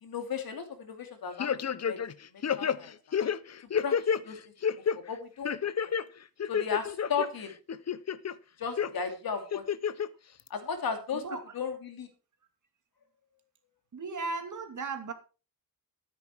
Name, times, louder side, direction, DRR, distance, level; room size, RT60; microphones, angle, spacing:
voice 1, 0.0-2.0 2.6-2.9 3.8-3.9 4.2-4.4 5.1-5.5 6.5-7.5 8.6-9.6 10.5-11.2 11.5-12.1, left 6 dB, 90° left, 6 dB, 2.9 m, -34 dB
sound 1, 1.4-2.1 2.4-4.2 4.6-5.0 5.4-6.0 6.4-7.3 7.7-8.3 8.8-8.9 9.5-10.1 10.5-10.6, left 7 dB, 50° left, 0.7 m, -29 dB
voice 2, 11.1-11.5 13.9-15.1, right 4 dB, 60° right, 6 dB, 2.5 m, -36 dB
13.0 x 9.7 x 4.5 m, 0.35 s
wide cardioid pair, 130°, 34 cm